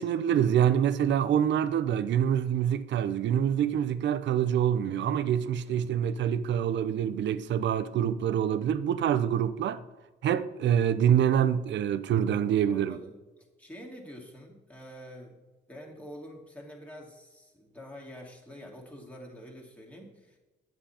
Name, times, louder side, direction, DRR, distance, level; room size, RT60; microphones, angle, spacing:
voice 1, 0.0-9.8 10.2-13.0, right 9 dB, 65° right, 0.6 m, -26 dB
voice 2, 5.6-6.1 12.7-13.2 13.6-15.4 15.7-20.4, equal, 5° left, 2.3 m, -47 dB
9.1 x 7.4 x 4.3 m
cardioid pair, 90°, 20 cm